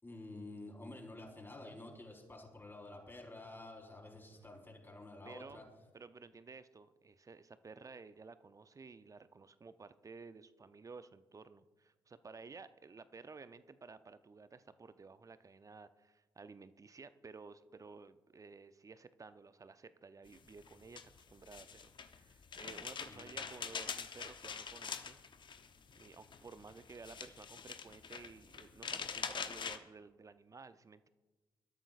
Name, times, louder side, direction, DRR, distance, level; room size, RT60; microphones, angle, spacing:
voice 1, 0.0-5.6 23.1-23.4, left 2 dB, 20° left, 0 dB, 4.4 m, -50 dB
voice 2, 4.3-4.7 5.2-5.7 5.9-25.2 25.9-31.1, right 4 dB, 25° right, 13 dB, 0.7 m, -54 dB
sound 1, 20.3-29.8, left 6 dB, 40° left, 1.0 m, -45 dB
23.5 x 13.0 x 2.5 m, 1.2 s
figure-of-eight pair, 40°, 12 cm